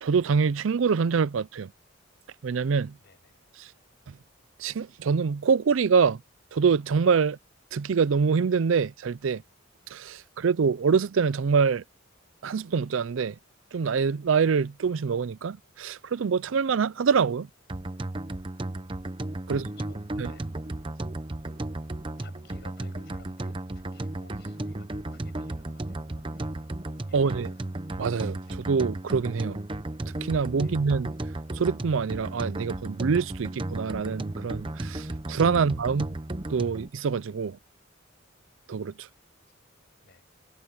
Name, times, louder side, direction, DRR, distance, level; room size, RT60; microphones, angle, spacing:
voice 1, 0.0-1.7 2.4-2.9 3.6-3.7 4.6-6.2 6.5-7.4 7.7-9.4 9.9-11.8 12.4-13.3 13.7-17.5 19.5-19.7 20.2-20.3 27.1-27.5 28.0-29.6 30.2-31.1 31.6-36.1 36.5-37.6 38.7-39.1, right 5 dB, 75° right, 0.5 m, -25 dB
voice 2, 2.9-3.4 19.5-20.5 22.2-26.7 27.1-27.7 28.4-28.6 30.6-30.8 40.0-40.2, left 3 dB, 55° left, 6.2 m, -56 dB
sound 1, 17.7-36.9, right 1 dB, 25° right, 0.8 m, -34 dB
head